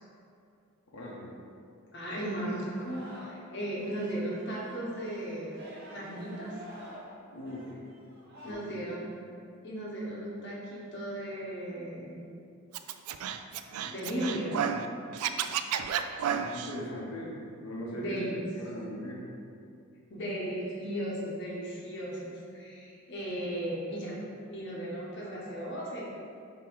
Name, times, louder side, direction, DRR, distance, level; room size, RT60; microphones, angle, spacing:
voice 1, 0.9-1.3 7.3-7.7 8.4-8.8 16.3-17.3 17.6-19.2, equal, 85° left, -4 dB, 1.1 m, -40 dB
voice 2, 1.9-5.5 5.9-6.6 8.4-9.1 9.6-12.2 13.8-14.6 17.9-18.5 20.1-24.1 24.5-26.0, right 1 dB, 50° left, -5 dB, 1.1 m, -36 dB
Singing, 2.7-3.5 3.8-8.5, equal, 45° right, 1.1 m, -49 dB
Scratching (performance technique), 12.7-14.9 15.1-16.7, right 8 dB, 85° right, 0.3 m, -32 dB
6.9 x 3.1 x 4.7 m, 2.5 s
head